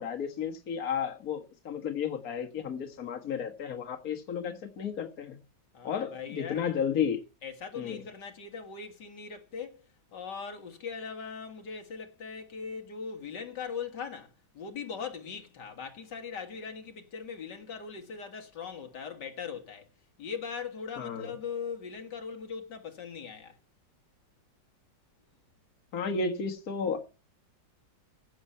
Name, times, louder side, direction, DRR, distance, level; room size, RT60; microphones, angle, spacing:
voice 1, 0.0-5.4 5.8-7.2 7.8-8.0 21.0-21.3 25.9-27.0, left 6 dB, 55° left, 2.0 m, -33 dB
voice 2, 5.7-6.6 7.4-9.8 10.1-19.9 20.2-23.6, left 6 dB, 70° left, 2.3 m, -40 dB
15.5 x 8.0 x 5.6 m
omnidirectional pair, 1.9 m